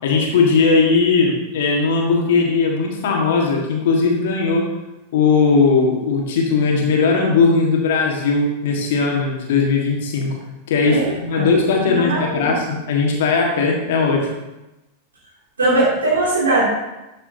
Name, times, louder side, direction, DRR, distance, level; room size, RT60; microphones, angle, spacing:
voice 1, 0.0-4.6 5.1-10.3 10.7-14.3, left 4 dB, 55° left, 0 dB, 1.7 m, -18 dB
voice 2, 10.8-11.5 11.9-12.5 15.6-16.7, right 2 dB, 70° right, -7 dB, 2.8 m, -20 dB
12.5 x 5.5 x 2.8 m, 0.99 s
figure-of-eight pair, 90°, 0 cm